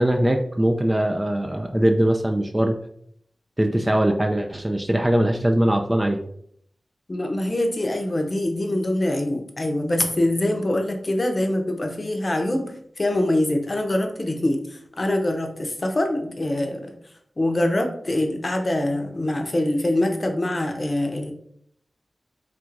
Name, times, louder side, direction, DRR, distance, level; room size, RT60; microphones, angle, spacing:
voice 1, 0.0-2.8 3.6-6.2, right 1 dB, 15° right, 4 dB, 0.3 m, -21 dB
voice 2, 7.1-16.9 17.4-21.3, left 1 dB, 35° left, 3 dB, 0.7 m, -24 dB
3.6 x 2.5 x 4.4 m, 0.66 s
wide cardioid pair, 105°, 0 cm